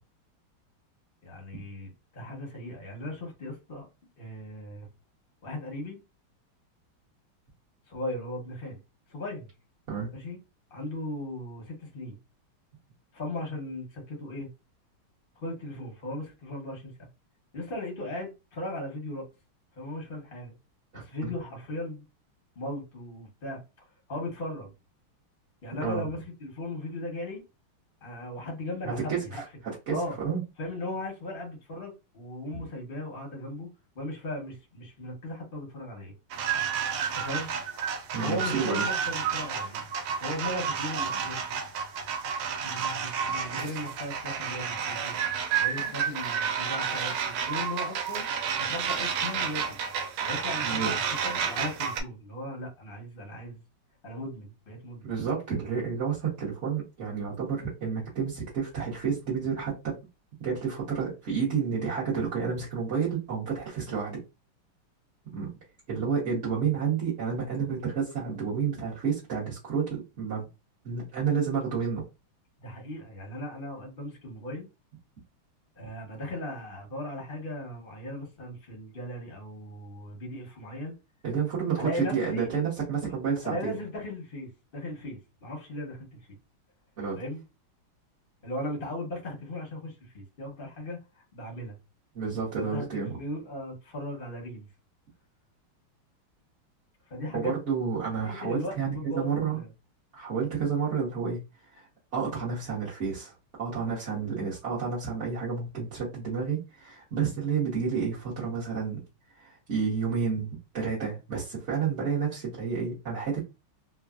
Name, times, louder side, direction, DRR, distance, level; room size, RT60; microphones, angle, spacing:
voice 1, 1.2-3.9 4.2-4.9 5.4-6.0 7.9-8.8 9.1-9.5 10.1-10.4 10.7-12.2 13.1-14.5 15.4-17.1 17.5-19.3 19.8-20.5 20.9-22.0 22.6-23.6 24.1-24.7 25.6-27.4 28.0-29.4 29.9-30.2 30.6-33.7 33.9-36.1 37.1-37.5 38.2-39.8 40.2-41.5 42.6-45.2 45.6-48.3 48.6-49.8 50.2-53.6 54.0-55.1 72.6-74.7 75.8-80.9 81.8-82.5 83.4-86.4 87.2-87.4 88.4-91.8 92.5-94.7 97.1-97.5 98.2-99.7, left 1 dB, 45° left, 0.7 m, -37 dB
voice 2, 20.9-21.3 25.8-26.0 28.8-29.4 29.9-30.4 38.1-38.8 50.6-50.9 55.0-60.0 60.4-64.2 65.3-65.5 65.9-70.5 70.8-72.0 81.2-83.7 87.0-87.2 92.1-93.2 97.3-99.6 100.1-101.4 101.7-103.3 103.6-109.0 109.4-113.4, right 6 dB, 50° right, 0.9 m, -30 dB
sound 1, 36.3-52.0, right 7 dB, 85° right, 1.5 m, -31 dB
3.4 x 2.2 x 2.3 m
omnidirectional pair, 2.3 m